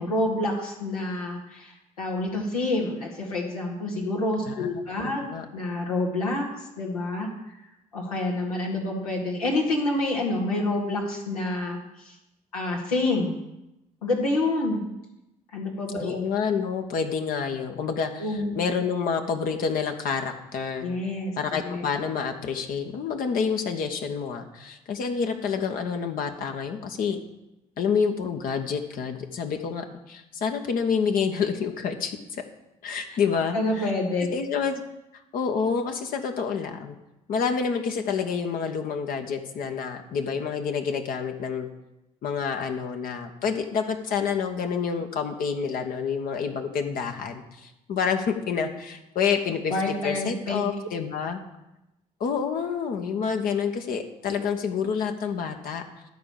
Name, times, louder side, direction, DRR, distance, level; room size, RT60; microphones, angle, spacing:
voice 1, 0.0-7.3 7.9-12.2 12.5-13.3 14.0-14.8 15.5-16.1 18.2-18.6 20.8-21.3 21.6-21.8 33.1-33.2 33.5-34.3 49.7-50.6, left 2 dB, 80° left, -2 dB, 1.9 m, -28 dB
voice 2, 5.0-5.4 16.0-20.9 21.4-27.2 27.8-32.4 32.8-33.9 34.3-34.8 35.3-37.0 37.3-41.7 42.2-49.7 50.0-51.4 52.2-55.8, left 6 dB, 50° left, 4 dB, 1.2 m, -28 dB
12.5 x 4.9 x 7.0 m, 0.92 s
figure-of-eight pair, 45°, 18 cm